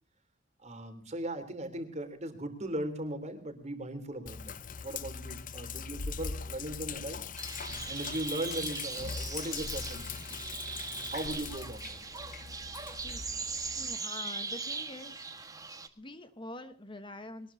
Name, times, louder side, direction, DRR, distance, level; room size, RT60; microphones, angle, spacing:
voice 1, 0.6-4.6 4.8-7.2 7.8-10.2 11.1-12.0, right 1 dB, 35° right, 7 dB, 3.5 m, -38 dB
Sink (filling or washing), 4.3-14.0, left 5 dB, 45° left, 0.7 m, -41 dB
sound 1, 7.4-15.9, right 4 dB, 20° right, 1.6 m, -40 dB
voice 2, 13.7-15.3 16.0-17.5, left 2 dB, 25° left, 9 dB, 1.2 m, -45 dB
22.5 x 20.0 x 2.8 m, 0.37 s
head